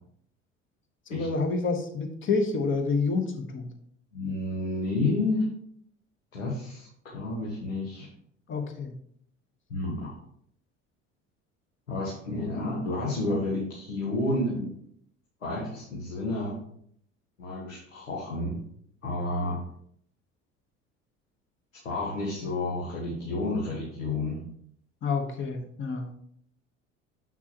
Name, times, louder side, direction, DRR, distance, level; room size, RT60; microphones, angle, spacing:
voice 1, 1.1-3.7 8.5-8.9 25.0-26.1, left 4 dB, 30° left, 4 dB, 1.3 m, -28 dB
voice 2, 4.1-5.5 6.3-8.1 9.7-10.2 11.9-14.7 15.4-16.6 17.4-18.6 19.0-19.6 21.8-24.4, left 2 dB, 80° left, -4 dB, 1.5 m, -30 dB
7.4 x 6.0 x 2.9 m, 0.65 s
figure-of-eight pair, 65°, 38 cm